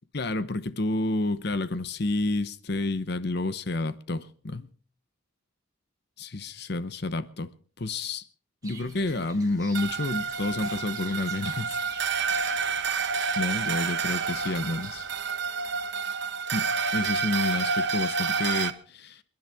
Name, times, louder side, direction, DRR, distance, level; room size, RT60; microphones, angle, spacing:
voice 1, 0.1-4.7 6.2-7.5 7.8-8.2 8.6-11.8 12.2-12.4 13.4-15.0 16.5-19.2, left 2 dB, 50° left, 0.8 m, -30 dB
sound 1, 8.6-15.2, right 4 dB, 15° right, 2.3 m, -48 dB
sound 2, 9.7-18.7, right 5 dB, 55° right, 1.1 m, -29 dB
27.5 x 10.5 x 3.5 m
head